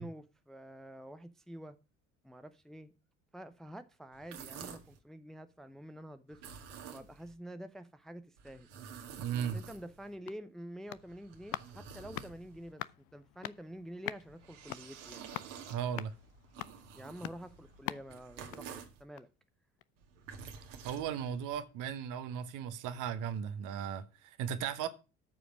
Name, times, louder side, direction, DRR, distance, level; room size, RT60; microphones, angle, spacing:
voice 1, 0.0-1.8 2.2-2.9 3.3-8.7 9.5-12.8 13.1-15.3 16.9-18.7 19.0-19.3, equal, ahead, 0.6 m, -48 dB
sound 1, 4.1-5.0 6.3-7.3 8.4-10.1 10.9-12.7 14.1-19.0 20.0-21.6, right 7 dB, 70° right, 2.1 m, -50 dB
voice 2, 9.2-9.6 15.7-16.1 20.8-24.9, right 8 dB, 55° right, 1.4 m, -36 dB
sound 2, 10.0-19.5 19.8-19.9, left 17 dB, 50° left, 0.6 m, -46 dB
13.5 x 5.0 x 6.1 m
figure-of-eight pair, 55°, 38 cm